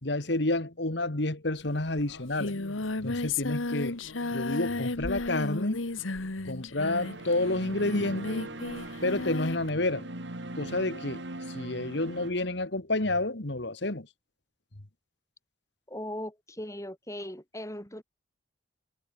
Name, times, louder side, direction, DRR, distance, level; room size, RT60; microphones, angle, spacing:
voice 1, 0.0-2.5 3.0-4.0 4.3-5.8 6.4-8.5 9.0-10.1 10.6-11.2 11.5-14.1, left 2 dB, 60° left, 2.0 m, -29 dB
Singing, 1.7-1.8 2.0-9.7, left 3 dB, 90° left, 1.6 m, -34 dB
sound 1, 6.8-12.3, right 1 dB, 65° right, 2.6 m, -41 dB
voice 2, 15.9-18.0, left 1 dB, 15° left, 6.8 m, -38 dB
head